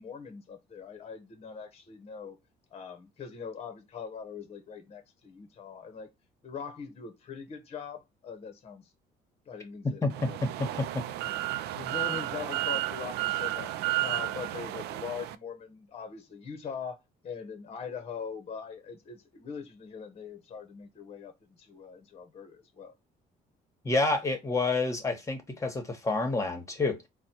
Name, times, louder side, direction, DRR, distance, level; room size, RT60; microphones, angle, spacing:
voice 1, 0.0-2.4 2.7-6.1 6.4-8.9 9.5-10.4 11.1-11.2 11.7-13.7 14.0-22.9, left 6 dB, 35° left, 0.9 m, -42 dB
voice 2, 10.0-10.9 23.8-27.0, left 3 dB, 20° left, 1.2 m, -29 dB
sound 1, 10.1-15.4, right 15 dB, 75° right, 0.4 m, -32 dB
4.1 x 2.2 x 4.3 m
cardioid pair, 110°, 17 cm